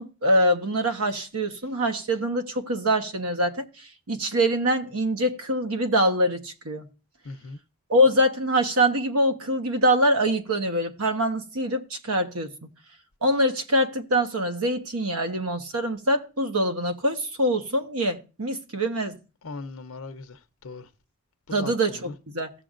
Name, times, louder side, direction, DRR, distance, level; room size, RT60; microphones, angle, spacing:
voice 1, 0.0-3.7 4.1-6.8 7.9-12.5 13.2-19.2 21.5-22.5, equal, 90° right, 1.2 m, -24 dB
voice 2, 7.2-7.6 19.4-20.9 21.5-22.1, left 3 dB, 80° left, 0.7 m, -39 dB
16.0 x 6.8 x 2.5 m
head